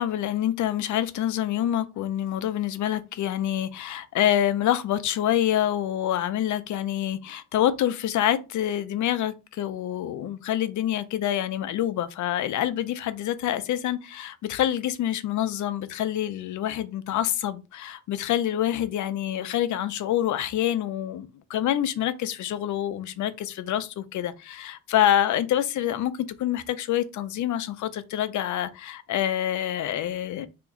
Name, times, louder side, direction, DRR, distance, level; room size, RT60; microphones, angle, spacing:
voice 1, 0.0-26.1 26.4-30.5, left 11 dB, 65° left, 0.5 m, -26 dB
2.9 x 2.5 x 3.6 m
cardioid pair, 155°, 32 cm